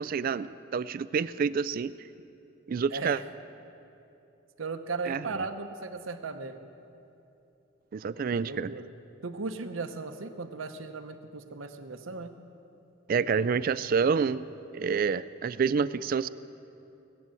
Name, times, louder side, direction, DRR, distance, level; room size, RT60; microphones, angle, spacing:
voice 1, 0.0-1.9 2.7-3.2 5.1-5.3 7.9-8.7 13.1-16.3, right 6 dB, 45° right, 16 dB, 0.3 m, -28 dB
voice 2, 2.9-3.2 4.6-6.7 8.4-8.9 9.2-12.3, right 4 dB, 80° right, 8 dB, 0.8 m, -37 dB
17.5 x 8.3 x 7.6 m, 2.8 s
head